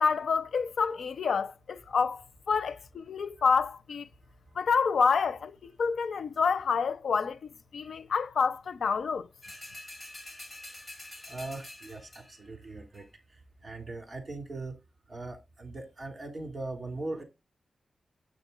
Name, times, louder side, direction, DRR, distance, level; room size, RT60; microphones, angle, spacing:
voice 1, 0.0-4.1 4.5-7.4 7.7-9.3, left 5 dB, 85° left, 0.8 m, -28 dB
sound 1, 9.4-12.5 12.9-13.0, left 1 dB, 20° left, 5.9 m, -46 dB
voice 2, 11.3-13.1 13.6-14.8 15.1-17.2, right 2 dB, 35° right, 3.2 m, -40 dB
9.0 x 8.5 x 4.0 m
wide cardioid pair, 150°, 0 cm